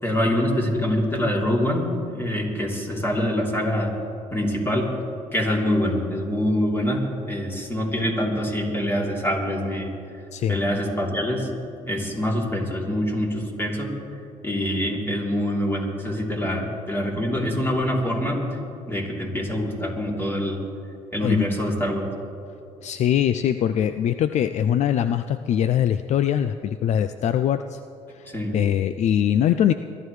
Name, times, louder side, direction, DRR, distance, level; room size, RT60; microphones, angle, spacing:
voice 1, 0.0-3.9 4.3-4.9 5.3-9.9 10.5-11.5 11.8-13.9 14.4-18.4 18.9-20.6 21.1-22.0 28.3-28.6, equal, 15° left, -2 dB, 3.2 m, -25 dB
voice 2, 22.8-27.8 28.1-28.3 28.5-29.7, left 10 dB, 55° left, 11 dB, 0.4 m, -22 dB
23.0 x 12.5 x 3.3 m, 2.8 s
supercardioid pair, 85°, 14 cm